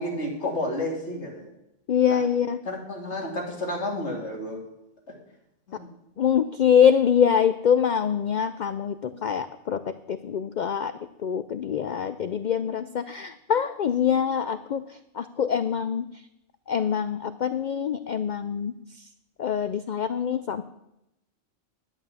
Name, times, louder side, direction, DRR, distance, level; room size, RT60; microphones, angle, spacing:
voice 1, 0.0-1.5 2.1-2.2 2.6-4.6 5.7-5.9, left 1 dB, 55° left, -1 dB, 3.1 m, -31 dB
voice 2, 1.9-2.6 6.2-10.9 11.2-14.8 15.1-16.0 16.7-19.0 19.4-20.6, left 8 dB, 80° left, 11 dB, 0.4 m, -24 dB
11.5 x 8.0 x 7.1 m, 0.86 s
omnidirectional pair, 1.4 m